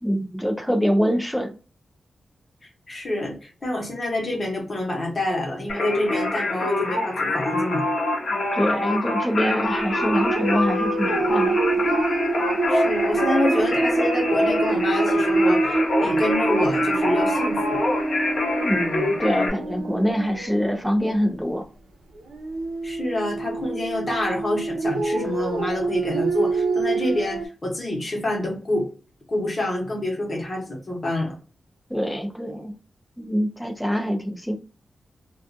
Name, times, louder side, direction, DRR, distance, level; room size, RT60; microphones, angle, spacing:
voice 1, 0.0-1.6 8.5-11.6 18.6-21.7 31.9-32.7 33.2-34.5, equal, ahead, 0.4 m, -24 dB
voice 2, 2.9-7.8 12.7-17.8 22.8-28.9 29.3-31.4, left 1 dB, 30° left, 0.9 m, -27 dB
Singing, 5.7-19.5, left 2 dB, 55° left, 0.7 m, -25 dB
sound 1, 9.6-20.9 22.2-27.5, right 3 dB, 80° right, 0.6 m, -25 dB
2.4 x 2.3 x 2.6 m
wide cardioid pair, 155°, 0 cm